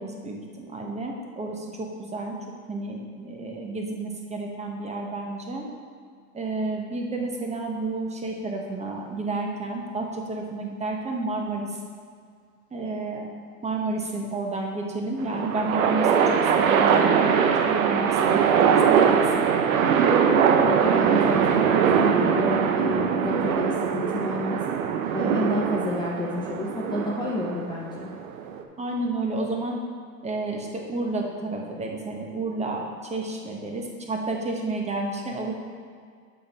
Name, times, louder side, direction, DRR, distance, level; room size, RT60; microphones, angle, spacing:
voice 1, 0.0-2.4 2.7-5.7 6.3-11.7 12.7-13.3 13.6-19.5 28.8-29.8 30.2-32.8 33.1-35.5, right 2 dB, 15° right, 0 dB, 1.1 m, -30 dB
sound 1, 15.2-28.6, right 7 dB, 65° right, 0.9 m, -22 dB
voice 2, 20.1-24.6 25.1-28.1, left 1 dB, 10° left, -4 dB, 0.7 m, -30 dB
6.8 x 5.4 x 5.3 m, 2.1 s
hypercardioid pair, 110°, 44 cm